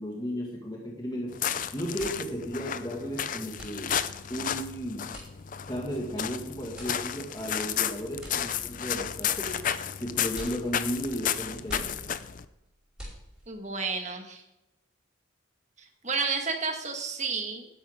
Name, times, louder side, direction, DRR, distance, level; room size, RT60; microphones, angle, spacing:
voice 1, 0.0-1.4 1.7-4.0 4.3-5.2 5.7-9.7 10.0-11.9, equal, 20° left, -2 dB, 1.8 m, -34 dB
sound 1, 1.3-12.4, left 9 dB, 40° left, 0.5 m, -33 dB
sound 2, 1.9-13.7, equal, 5° right, 4.8 m, -48 dB
voice 2, 13.5-14.4 16.0-17.7, right 4 dB, 35° right, 4 dB, 1.6 m, -31 dB
12.0 x 11.0 x 3.6 m, 0.93 s
head